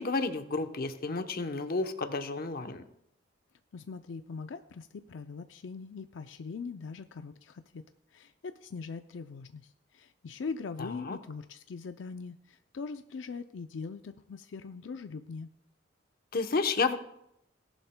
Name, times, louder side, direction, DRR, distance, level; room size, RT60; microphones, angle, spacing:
voice 1, 0.0-2.8 10.8-11.2 16.3-17.0, left 3 dB, 55° left, 8 dB, 0.9 m, -31 dB
voice 2, 3.7-7.8 8.1-15.5, left 4 dB, 85° left, 9 dB, 0.5 m, -41 dB
17.5 x 11.5 x 2.2 m, 0.76 s
head